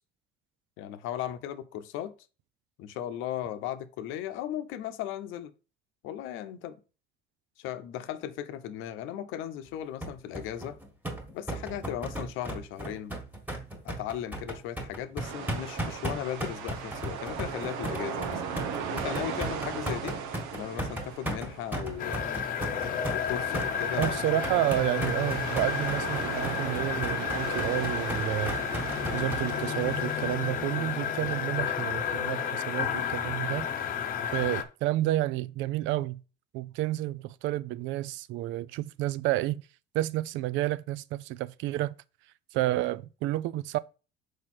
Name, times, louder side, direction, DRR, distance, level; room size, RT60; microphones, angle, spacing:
voice 1, 0.8-2.1 2.8-5.5 6.0-6.8 7.6-10.8 11.3-13.1 13.8-18.5 18.9-20.2 20.5-22.4 22.7-24.5 26.0-26.2, left 11 dB, 75° left, 0.8 m, -37 dB
sound 1, 10.0-29.4, right 1 dB, 5° right, 1.6 m, -36 dB
sound 2, 15.2-31.5, right 6 dB, 90° right, 1.2 m, -38 dB
sound 3, 22.0-34.6, left 8 dB, 45° left, 0.8 m, -31 dB
voice 2, 24.0-28.5 29.1-33.7 34.3-36.2 36.5-39.6 39.9-41.9 42.5-43.8, right 15 dB, 65° right, 0.4 m, -30 dB
6.3 x 4.9 x 4.3 m
cardioid pair, 155°, 21 cm